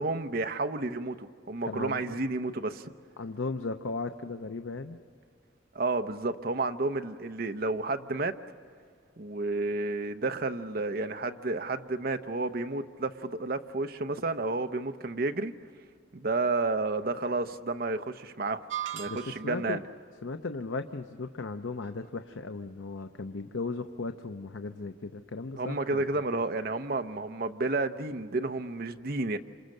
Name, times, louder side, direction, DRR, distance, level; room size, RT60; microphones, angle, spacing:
voice 1, 0.0-2.9 5.7-8.3 9.2-15.5 16.1-18.6 18.9-19.8 25.5-29.4, right 3 dB, 50° right, 7 dB, 0.8 m, -31 dB
voice 2, 1.7-2.2 3.2-5.0 19.1-19.2 19.4-19.8 20.2-26.0, left 3 dB, 90° left, 8 dB, 0.7 m, -36 dB
sound 1, 18.7-19.7, right 11 dB, 85° right, 0.9 m, -37 dB
27.5 x 27.0 x 6.6 m, 2.2 s
head